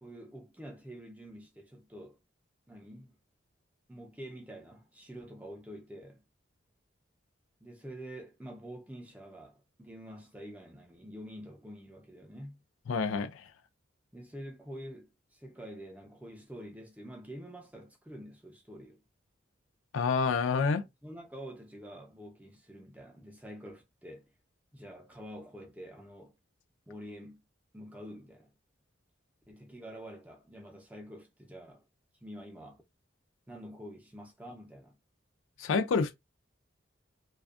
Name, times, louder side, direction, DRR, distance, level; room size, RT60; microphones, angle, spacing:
voice 1, 0.0-2.2 2.7-3.2 3.9-6.2 7.6-12.6 14.1-19.0 21.0-24.3 24.7-26.4 26.9-27.4 27.7-28.5 29.5-31.8 32.2-32.8 33.5-35.0, equal, 10° right, 0.5 m, -47 dB
voice 2, 12.9-13.5 19.9-20.9 35.6-36.1, left 5 dB, 85° left, 0.4 m, -28 dB
2.5 x 2.2 x 2.4 m
head